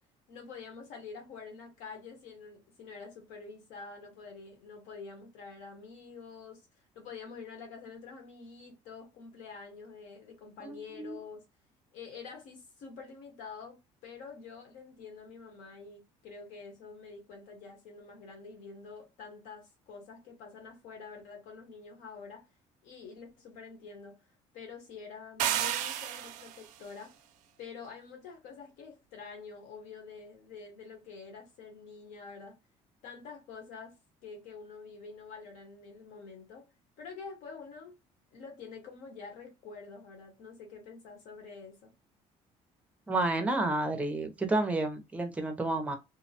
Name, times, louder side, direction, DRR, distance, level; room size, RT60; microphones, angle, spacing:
voice 1, 0.3-6.7 6.9-11.4 11.9-22.4 22.8-24.2 24.5-27.1 27.6-32.6 33.0-34.0 34.2-36.7 37.0-37.9 38.3-41.9, left 5 dB, 85° left, 1.1 m, -47 dB
voice 2, 10.6-11.2 43.1-46.0, right 2 dB, 10° right, 0.4 m, -30 dB
sound 1, 25.4-26.7, right 11 dB, 90° right, 0.4 m, -31 dB
2.7 x 2.1 x 2.8 m
cardioid pair, 165°, 13 cm